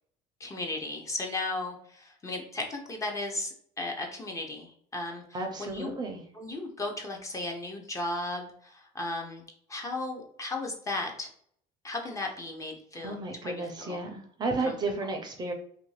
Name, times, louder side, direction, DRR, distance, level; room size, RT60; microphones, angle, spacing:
voice 1, 0.4-5.2 5.6-6.0 6.3-9.4 9.7-11.3 11.8-13.2 13.4-14.0 14.6-14.7, left 2 dB, 20° left, 1 dB, 0.5 m, -35 dB
voice 2, 5.3-6.2 12.9-15.5, right 3 dB, 30° right, 4 dB, 0.5 m, -33 dB
2.6 x 2.5 x 3.1 m, 0.62 s
cardioid pair, 140°, 15 cm